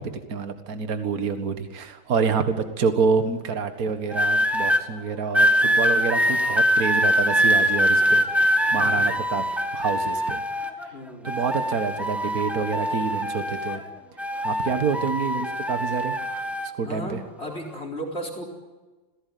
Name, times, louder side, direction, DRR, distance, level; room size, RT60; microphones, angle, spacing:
voice 1, 0.0-8.2 8.7-9.4 9.7-10.4 11.2-13.8 14.4-16.2 16.8-17.2, right 5 dB, 50° right, 8 dB, 2.0 m, -27 dB
tin whistle messing, 4.1-4.8 5.3-10.9 11.2-13.9 14.2-16.7 17.5-17.8, equal, ahead, 1.5 m, -23 dB
voice 2, 8.8-9.1 10.9-11.3 14.6-15.0 16.8-18.4, equal, 30° left, 3 dB, 4.7 m, -35 dB
26.0 x 17.0 x 9.4 m, 1.2 s
omnidirectional pair, 2.1 m